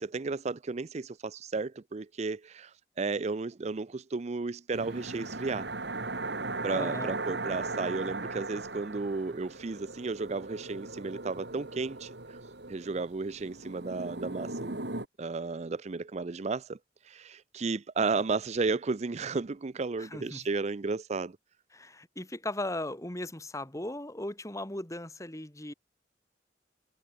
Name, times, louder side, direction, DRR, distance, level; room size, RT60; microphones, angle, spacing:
voice 1, 0.0-5.7 6.6-12.4 12.7-14.8 15.2-16.8 17.0-21.4, right 4 dB, 40° right, 0.5 m, -33 dB
sound 1, 4.7-15.1, right 2 dB, 70° right, 2.9 m, -38 dB
voice 2, 6.7-7.1 20.0-20.5 21.7-25.7, left 1 dB, 15° left, 2.3 m, -37 dB
head